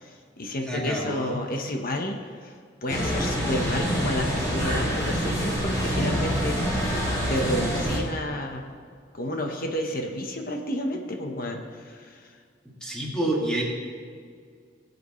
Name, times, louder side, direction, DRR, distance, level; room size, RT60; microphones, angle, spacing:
voice 1, 0.0-2.5 2.8-6.7 7.3-8.7 9.1-12.3, left 1 dB, 50° left, 3 dB, 1.2 m, -31 dB
voice 2, 0.6-1.4 12.8-13.6, right 1 dB, 5° left, -4 dB, 2.4 m, -28 dB
sound 1, 2.9-8.0, equal, 20° left, 2.8 m, -26 dB
20.0 x 8.0 x 3.2 m, 2.1 s
head